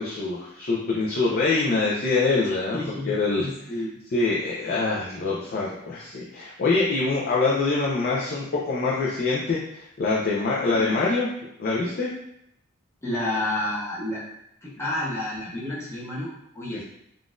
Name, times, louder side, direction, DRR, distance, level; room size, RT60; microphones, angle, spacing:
voice 1, 0.0-2.8 3.1-3.4 4.1-11.3 11.6-12.1 16.7-16.8, left 3 dB, 45° left, -5 dB, 0.5 m, -24 dB
voice 2, 2.4-3.1 3.4-4.0 4.6-4.7 10.7-11.0 13.0-14.2 14.6-16.8, left 1 dB, 15° left, -7 dB, 0.8 m, -30 dB
3.7 x 2.4 x 2.4 m, 0.77 s
head